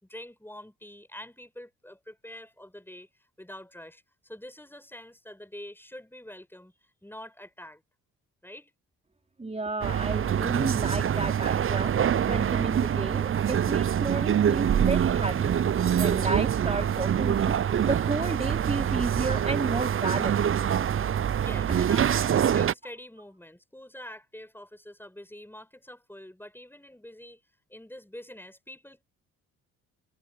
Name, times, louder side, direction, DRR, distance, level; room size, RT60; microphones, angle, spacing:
voice 1, 0.0-7.8 8.4-8.7 21.4-27.4 27.7-29.0, left 1 dB, 5° left, 5.7 m, -45 dB
voice 2, 9.4-11.9 12.3-15.5 16.0-17.5 17.8-20.4, right 3 dB, 20° right, 3.4 m, -32 dB
sound 1, 9.8-22.7, right 9 dB, 35° right, 0.7 m, -25 dB
hypercardioid pair, 50°, 36 cm